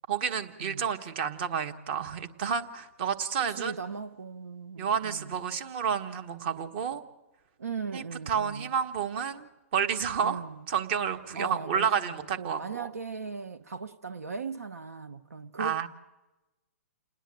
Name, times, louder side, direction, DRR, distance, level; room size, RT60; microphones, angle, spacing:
voice 1, 0.1-3.7 4.8-7.0 7.9-10.4 10.7-12.9 15.6-15.9, right 7 dB, 45° right, 1.5 m, -30 dB
voice 2, 3.4-5.3 7.6-8.7 10.2-10.6 11.3-15.8, right 5 dB, 90° right, 0.8 m, -38 dB
29.0 x 10.0 x 9.0 m
hypercardioid pair, 130°, 8 cm